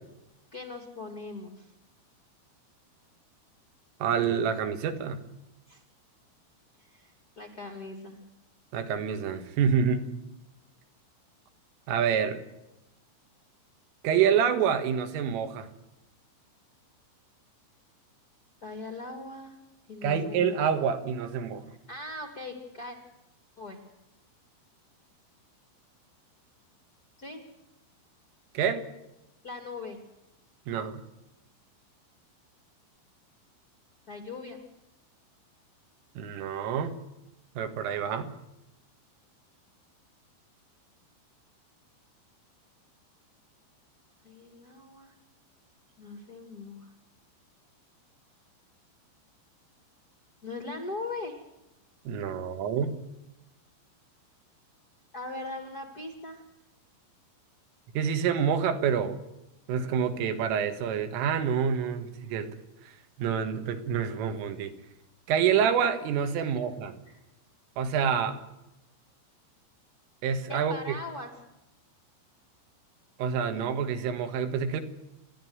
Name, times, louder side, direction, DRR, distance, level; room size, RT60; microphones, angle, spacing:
voice 1, 0.5-1.7 5.7-5.8 6.8-8.2 18.6-19.6 19.9-20.5 21.7-23.0 23.6-23.8 27.2-27.4 29.4-30.0 34.1-34.6 44.2-45.1 46.0-46.9 50.4-51.4 55.1-56.4 66.3-66.5 67.1-67.2 70.5-71.3, left 2 dB, 55° left, 5 dB, 1.0 m, -40 dB
voice 2, 4.0-5.2 8.7-10.1 11.9-12.4 14.0-15.7 20.0-21.6 28.6-28.8 30.7-31.0 36.2-37.0 37.6-38.3 52.1-53.0 58.0-59.2 59.7-62.6 63.2-64.7 65.3-67.0 67.8-68.4 70.2-70.9 73.2-74.8, right 7 dB, 80° right, 8 dB, 4.2 m, -27 dB
29.5 x 11.5 x 9.5 m, 0.91 s
omnidirectional pair, 5.7 m